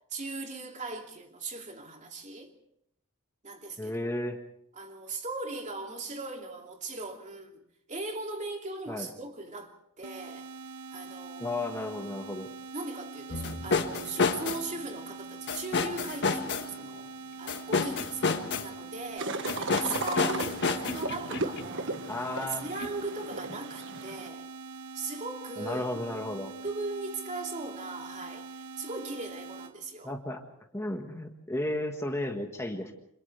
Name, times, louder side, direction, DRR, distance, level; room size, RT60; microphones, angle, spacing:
voice 1, 0.1-2.5 3.4-4.1 4.7-10.5 10.9-11.5 12.7-17.1 17.4-22.0 22.3-24.5 24.9-26.2 26.6-30.1, right 3 dB, 35° right, 2.7 m, -39 dB
voice 2, 3.8-4.4 8.9-9.1 11.4-12.5 19.9-20.4 22.1-22.7 25.6-26.5 30.0-30.4 30.7-32.9, left 1 dB, 10° left, 1.6 m, -34 dB
sound 1, 10.0-29.7, right 4 dB, 85° right, 1.3 m, -44 dB
sound 2, 13.3-14.7 15.5-16.7 17.5-18.7 19.5-21.7 22.8-22.9, left 4 dB, 55° left, 1.6 m, -29 dB
sound 3, 19.2-24.3, right 3 dB, 60° right, 1.6 m, -36 dB
29.5 x 26.5 x 3.4 m
head